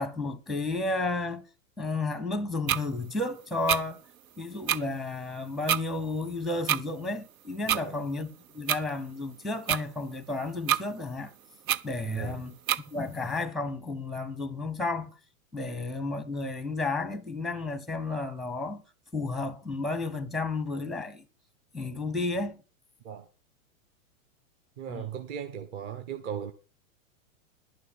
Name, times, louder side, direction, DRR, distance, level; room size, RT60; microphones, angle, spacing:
voice 1, 0.0-1.4 1.8-4.0 4.4-11.3 11.8-12.5 12.9-15.1 15.5-18.8 19.1-21.2 21.7-22.6 24.9-25.1, left 3 dB, ahead, 0.7 m, -32 dB
sound 1, 2.7-2.8 3.7-3.8 4.7-4.8 5.7-5.8 6.7-6.8 7.7-7.8 8.7-8.8 9.7-9.8 10.7-10.8 11.7-11.8 12.7-12.8, right 10 dB, 85° right, 0.8 m, -25 dB
voice 2, 7.7-8.0 12.0-12.4 23.0-23.3 24.8-26.5, right 8 dB, 35° right, 1.1 m, -37 dB
11.5 x 6.2 x 7.7 m
supercardioid pair, 150°, 41 cm